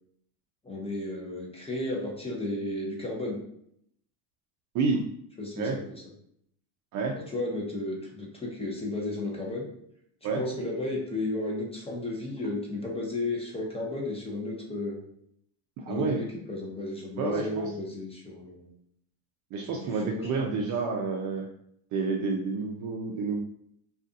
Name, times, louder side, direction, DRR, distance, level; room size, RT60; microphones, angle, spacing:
voice 1, 0.6-3.4 5.4-5.8 7.2-9.7 10.2-15.0 15.9-18.7 19.7-20.5, left 2 dB, 10° left, -2 dB, 0.6 m, -33 dB
voice 2, 15.8-16.2 17.2-17.7 19.5-21.5 21.9-23.4, right 4 dB, 40° right, 1 dB, 0.4 m, -29 dB
2.5 x 2.4 x 2.5 m, 0.70 s
supercardioid pair, 95°, 48 cm